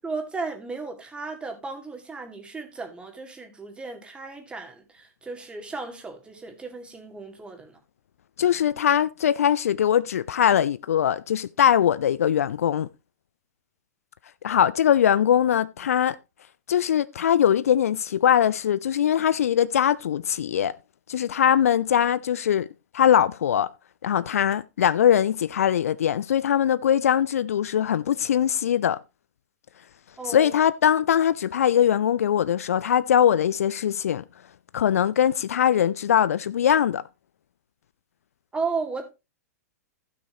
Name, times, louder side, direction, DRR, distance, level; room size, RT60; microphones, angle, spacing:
voice 1, 0.0-7.8 30.2-30.6 38.5-39.1, right 4 dB, 10° right, 2.1 m, -35 dB
voice 2, 8.4-12.9 14.4-16.2 16.7-20.7 21.1-22.7 22.9-23.7 24.0-29.0 30.3-34.2 34.7-37.0, left 9 dB, 65° left, 0.4 m, -21 dB
15.5 x 6.1 x 2.9 m
figure-of-eight pair, 100°, 9 cm